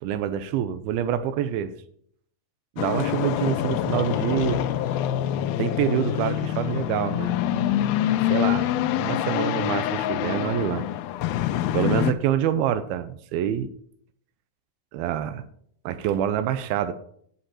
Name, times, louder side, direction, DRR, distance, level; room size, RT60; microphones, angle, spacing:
voice 1, 0.0-1.7 2.8-4.6 5.6-7.9 8.3-10.9 11.7-13.7 14.9-15.4 15.9-16.9, right 10 dB, 90° right, 11 dB, 2.6 m, -26 dB
sound 1, 2.8-12.1, left 12 dB, 85° left, 2.5 m, -25 dB
11.5 x 8.0 x 4.2 m, 0.64 s
omnidirectional pair, 4.3 m